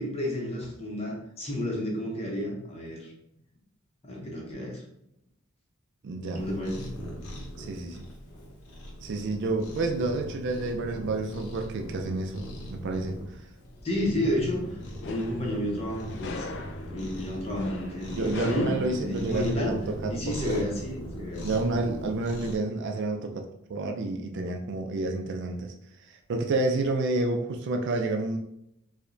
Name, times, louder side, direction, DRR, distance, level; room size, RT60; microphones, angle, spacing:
voice 1, 0.0-3.1 4.0-4.8 6.3-6.9 13.8-14.7 15.0-16.5 16.9-19.8 20.1-21.5, left 1 dB, 30° left, -1 dB, 0.7 m, -31 dB
voice 2, 6.0-6.4 7.6-8.0 9.0-13.2 18.1-20.6 21.4-25.7 26.1-28.4, right 2 dB, 55° right, 3 dB, 0.4 m, -29 dB
Cat, 6.3-22.6, equal, 90° left, 0.8 m, -40 dB
sound 1, 14.6-19.8, left 3 dB, 55° left, 0.3 m, -40 dB
4.8 x 2.1 x 2.6 m, 0.78 s
head